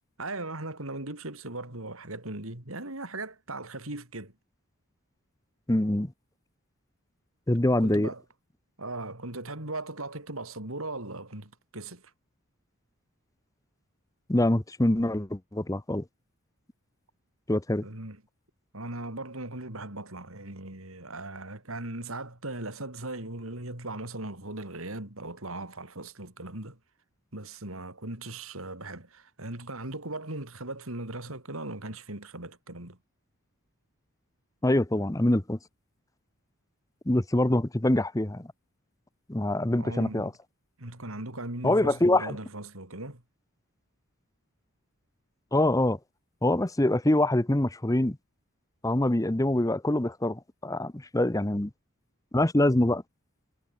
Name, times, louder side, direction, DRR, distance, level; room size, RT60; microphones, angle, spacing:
voice 1, 0.2-4.3 7.8-8.2 8.8-12.1 17.8-18.2 18.7-26.8 27.3-33.0 39.8-40.3 40.8-43.2, right 2 dB, 70° right, 4.4 m, -38 dB
voice 2, 5.7-6.1 7.5-8.1 14.3-16.0 17.5-17.9 34.6-35.6 37.1-38.5 39.3-40.3 41.6-42.4 45.5-46.0 46.4-48.2 48.8-51.7 52.3-53.0, left 1 dB, 15° left, 0.8 m, -24 dB
head